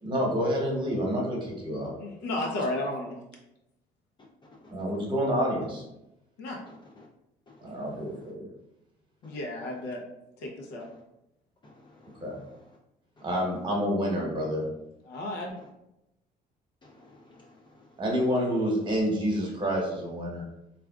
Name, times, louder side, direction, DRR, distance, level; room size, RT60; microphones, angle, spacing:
voice 1, 0.0-1.9 4.7-5.8 7.6-8.5 12.2-12.3 13.2-14.6 18.0-20.4, equal, 30° right, -2 dB, 1.0 m, -28 dB
voice 2, 2.0-3.2 6.4-6.6 9.2-10.0 10.4-10.9 15.0-15.5, left 1 dB, 85° left, 0 dB, 0.7 m, -33 dB
voice 3, 6.7-7.1 7.5-8.3 9.2-9.4 10.8-11.0 11.6-12.7 13.2-13.3 16.8-17.9, left 2 dB, 25° left, -3 dB, 0.5 m, -55 dB
3.4 x 2.5 x 2.3 m, 0.88 s
cardioid pair, 110°, 17 cm